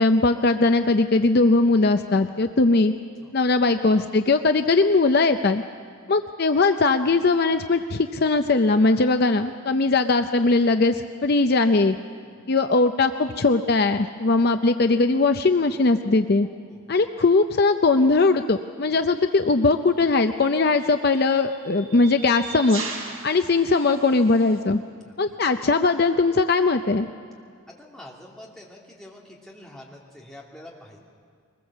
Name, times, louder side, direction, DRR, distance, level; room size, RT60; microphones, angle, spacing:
voice 1, 0.0-2.9 3.3-5.6 6.1-12.0 12.5-16.5 16.9-22.8 23.2-24.8 25.2-27.1, left 3 dB, 50° left, 8 dB, 0.6 m, -20 dB
voice 2, 16.4-16.9 23.1-23.2 25.0-25.1 27.7-31.0, left 1 dB, ahead, -4 dB, 2.7 m, -46 dB
sound 1, 19.2-19.4 20.4-24.6, right 4 dB, 90° right, 3.8 m, -39 dB
23.0 x 20.5 x 7.3 m, 2.1 s
head